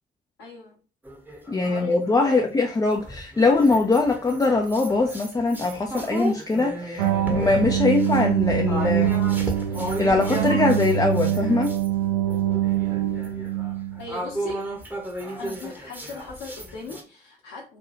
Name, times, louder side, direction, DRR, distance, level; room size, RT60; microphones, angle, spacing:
voice 1, 0.4-0.7 1.6-2.5 14.0-14.7 15.3-17.8, left 3 dB, 60° left, 0.8 m, -39 dB
sound 1, 1.1-2.4 3.0-11.9 12.3-17.0, right 1 dB, 5° right, 0.8 m, -34 dB
voice 2, 1.5-9.2 10.0-11.7, left 3 dB, 10° left, 0.4 m, -22 dB
sound 2, 7.0-14.1, right 11 dB, 75° right, 0.5 m, -24 dB
2.9 x 2.2 x 2.9 m
figure-of-eight pair, 40°, 30 cm